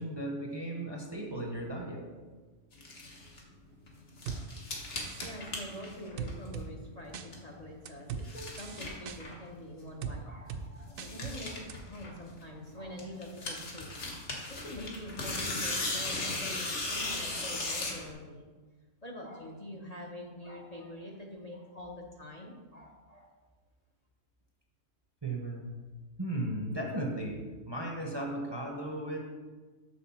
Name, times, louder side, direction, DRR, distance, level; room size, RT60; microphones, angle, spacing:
voice 1, 0.0-2.1 25.2-27.4 27.7-29.2, right 1 dB, 25° right, 0 dB, 0.8 m, -36 dB
sound 1, 2.7-3.4 3.9-6.7 6.9-7.6 8.0-9.5 9.8-9.9 10.2-10.3 10.4-10.5 10.8-12.6 13.0-18.1, left 2 dB, 65° left, 1.6 m, -37 dB
sound 2, 4.3-4.4 5.0-5.3 6.2-6.7 7.1-7.3 7.9-8.2 8.6-9.2 10.0-10.2 10.5-10.6 11.0-11.4 11.7-11.8, right 7 dB, 60° right, 0.6 m, -38 dB
voice 2, 5.2-13.9 14.5-18.5 19.0-23.3, left 1 dB, 35° left, -1 dB, 0.8 m, -45 dB
6.4 x 6.1 x 4.2 m, 1.4 s
omnidirectional pair, 1.3 m